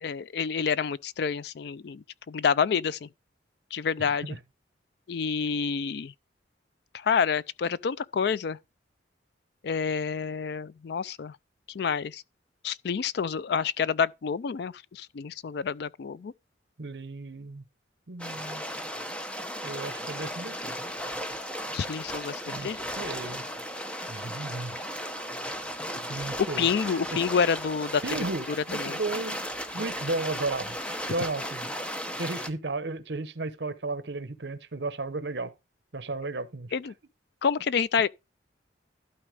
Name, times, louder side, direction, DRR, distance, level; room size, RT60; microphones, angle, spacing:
voice 1, 0.0-3.1 3.7-4.4 5.1-6.1 6.9-8.6 9.6-11.4 11.7-12.2 12.6-16.3 21.7-22.8 26.2-26.3 26.6-28.0 28.5-29.0 36.7-36.9 37.4-38.1, left 6 dB, 60° left, 0.4 m, -28 dB
voice 2, 4.0-4.4 16.8-17.6 18.1-18.6 19.6-20.8 22.5-23.4 24.1-24.9 26.1-27.0 28.0-29.4 29.7-30.8 31.1-31.7 32.2-35.5 35.9-36.7, right 3 dB, 65° right, 0.9 m, -34 dB
sound 1, 18.2-32.5, equal, 5° left, 0.9 m, -35 dB
12.0 x 4.2 x 4.9 m
head